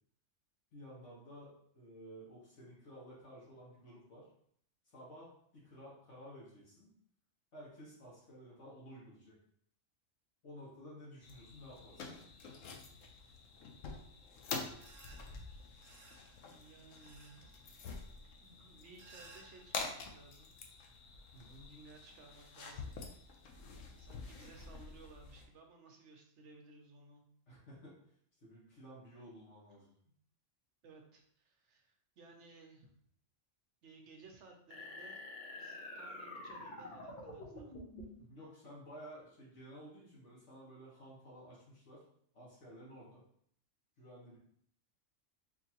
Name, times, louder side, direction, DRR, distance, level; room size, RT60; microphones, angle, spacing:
voice 1, 0.7-4.3 4.9-6.9 7.5-9.3 10.4-12.1 21.3-21.7 27.5-28.0 28.4-29.9 38.2-42.0 42.3-43.2 44.0-44.4, equal, 70° left, -6 dB, 1.6 m, -53 dB
sound 1, 11.2-25.4, left 4 dB, 85° left, 1.0 m, -47 dB
sound 2, 14.7-20.1, right 3 dB, 90° right, 1.1 m, -61 dB
voice 2, 16.4-17.5 18.3-20.6 21.7-22.9 24.0-27.2 29.8-29.9 30.8-32.9 33.8-35.2 35.5-37.8, right 3 dB, 70° right, 2 dB, 1.0 m, -58 dB
sound 3, 34.7-38.2, left 2 dB, 40° left, 1.0 m, -47 dB
4.4 x 2.8 x 2.9 m, 0.65 s
omnidirectional pair, 1.3 m